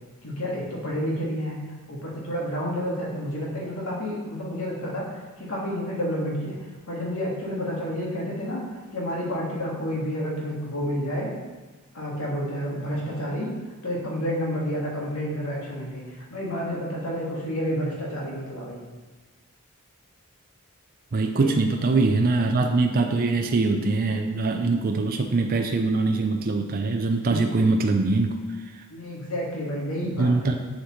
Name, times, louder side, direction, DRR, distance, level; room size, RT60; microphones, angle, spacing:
voice 1, 0.2-1.6 1.9-6.6 6.9-8.6 8.9-11.4 11.9-13.5 13.8-18.8 21.4-22.0 28.9-30.5, equal, 65° left, -4 dB, 1.9 m, -30 dB
voice 2, 21.1-28.4 30.2-30.5, right 3 dB, 40° right, 4 dB, 0.4 m, -23 dB
7.1 x 7.1 x 3.2 m, 1.2 s
head